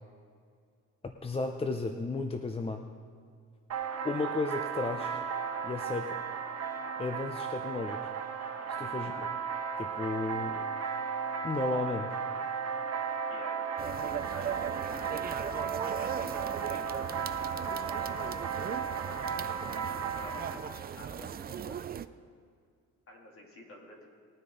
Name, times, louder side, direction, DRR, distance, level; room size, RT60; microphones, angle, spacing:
voice 1, 1.0-2.8 4.0-5.2 5.6-6.2 7.0-8.1 8.8-9.3 9.8-10.6 11.4-12.1, left 3 dB, 20° left, 5 dB, 0.6 m, -34 dB
sound 1, 3.7-20.5, right 6 dB, 50° right, 1.4 m, -35 dB
voice 2, 8.6-9.0 13.3-13.6 14.2-15.3 15.7-17.2 18.1-19.3 20.1-22.2 23.1-24.0, left 1 dB, 45° left, -1 dB, 3.0 m, -50 dB
sound 2, 13.8-22.1, right 8 dB, 30° right, 0.4 m, -39 dB
20.0 x 9.6 x 3.9 m, 2.2 s
cardioid pair, 130°, 32 cm